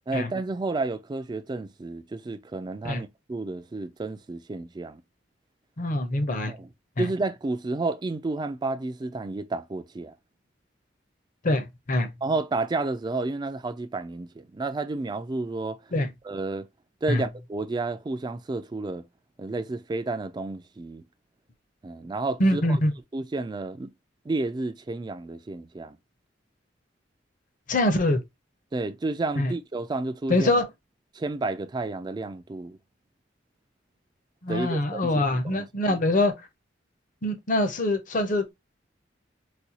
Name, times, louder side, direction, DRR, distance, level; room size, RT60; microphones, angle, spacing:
voice 1, 0.1-5.0 6.5-6.7 7.0-10.1 12.2-15.8 16.2-16.7 17.0-19.0 19.4-21.0 21.8-22.8 23.1-23.9 24.3-26.0 28.7-30.5 31.1-32.8 34.5-36.0, right 3 dB, 25° right, 0.3 m, -31 dB
voice 2, 5.8-6.5 7.0-7.1 11.4-12.1 15.9-16.1 17.1-17.2 22.4-22.9 27.7-28.2 29.4-29.5 30.3-30.7 34.4-36.3 37.2-38.5, left 1 dB, 45° left, 0.7 m, -24 dB
4.1 x 2.3 x 2.7 m
head